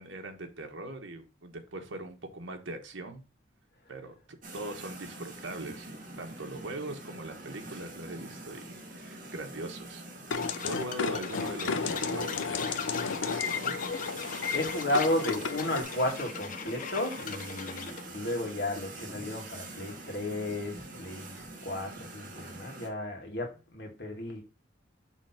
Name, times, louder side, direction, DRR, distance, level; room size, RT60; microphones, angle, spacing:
voice 1, 0.0-3.2 3.9-4.2 4.5-5.9 6.2-8.7 8.9-10.0 10.7-12.7 13.1-13.7, right 2 dB, 80° right, 1.2 m, -41 dB
sound 1, 4.4-22.9, right 2 dB, 45° right, 1.6 m, -45 dB
sound 2, 10.3-15.8, left 5 dB, 80° left, 0.6 m, -33 dB
sound 3, 10.3-18.0, left 6 dB, 45° left, 0.6 m, -40 dB
voice 2, 14.5-24.4, left 1 dB, 60° left, 1.8 m, -33 dB
6.1 x 3.3 x 5.8 m
head